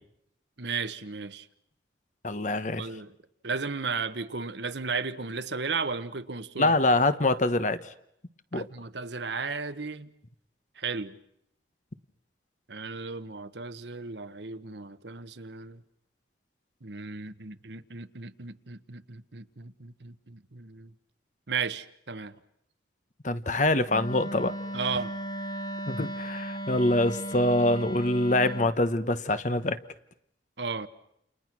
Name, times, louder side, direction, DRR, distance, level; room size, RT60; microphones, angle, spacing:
voice 1, 0.6-1.4 2.8-3.1 3.4-6.7 8.5-10.1 10.8-11.1 12.7-15.8 16.8-20.9 21.5-22.3 24.7-25.1 30.6-30.9, right 4 dB, 70° right, 1.3 m, -35 dB
voice 2, 2.2-2.8 6.6-7.8 8.5-8.7 23.2-24.5 25.9-29.8, left 2 dB, 40° left, 1.1 m, -25 dB
Wind instrument woodwind instrument, 23.9-28.8, right 1 dB, 20° left, 1.1 m, -36 dB
29.5 x 29.5 x 6.2 m
head